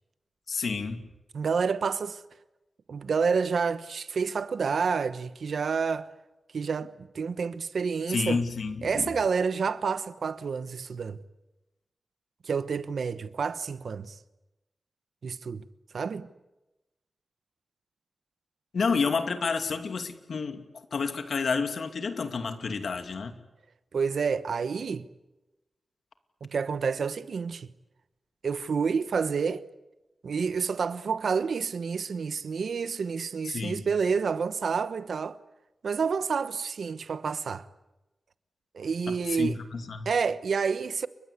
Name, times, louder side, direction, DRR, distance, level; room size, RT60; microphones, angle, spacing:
voice 1, 0.5-1.1 8.1-9.1 18.7-23.3 33.5-33.8 39.1-40.1, left 5 dB, 85° left, 2.6 m, -30 dB
voice 2, 1.3-2.2 2.9-6.1 6.5-8.4 8.8-11.2 12.4-14.1 15.2-15.6 15.9-16.3 23.9-25.1 26.4-27.7 28.4-29.6 30.2-35.4 35.8-37.7 38.7-39.6 40.0-41.1, right 5 dB, 85° right, 1.1 m, -29 dB
30.0 x 23.5 x 8.3 m
cardioid pair, 60°, 0 cm